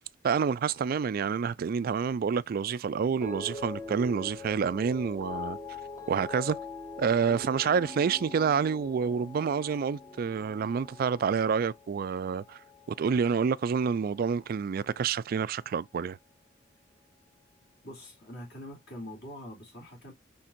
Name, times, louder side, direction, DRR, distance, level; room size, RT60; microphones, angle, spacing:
voice 1, 0.2-5.6 6.1-6.6 7.0-12.6 12.9-16.2, right 6 dB, 50° right, 0.3 m, -28 dB
sound 1, 3.2-13.6 13.9-14.4, left 3 dB, 15° left, 0.6 m, -43 dB
voice 2, 17.8-20.1, left 1 dB, 55° left, 2.8 m, -44 dB
5.8 x 3.5 x 2.4 m
head